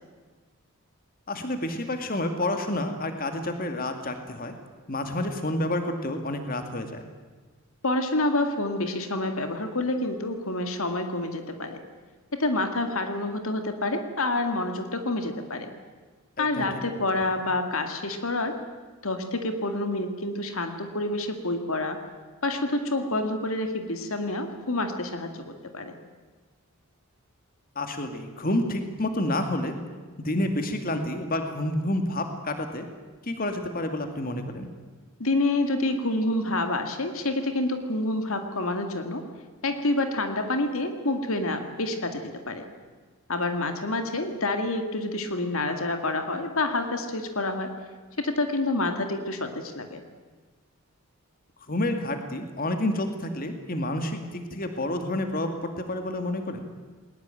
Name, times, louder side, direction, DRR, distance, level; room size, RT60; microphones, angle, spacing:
voice 1, 1.3-4.5 4.9-7.1 16.4-16.7 27.8-29.8 30.2-32.9 33.2-34.7 51.7-56.7, left 1 dB, 40° left, 6 dB, 2.3 m, -29 dB
voice 2, 7.8-11.8 12.3-15.7 16.4-18.6 19.0-22.0 22.4-25.9 35.2-39.2 39.6-42.6 43.3-47.7 48.2-50.0, left 2 dB, 65° left, 6 dB, 2.3 m, -28 dB
21.0 x 20.0 x 9.1 m, 1.4 s
head